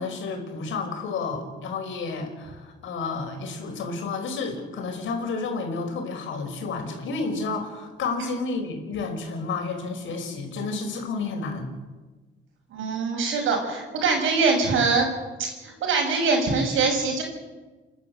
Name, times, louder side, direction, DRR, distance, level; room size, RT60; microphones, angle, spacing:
voice 1, 0.0-11.7, left 4 dB, 75° left, 4 dB, 5.1 m, -31 dB
voice 2, 12.7-15.1 15.4-17.2, right 4 dB, 80° right, 3 dB, 6.4 m, -23 dB
29.5 x 12.0 x 8.3 m, 1.3 s
cardioid pair, 90°, 20 cm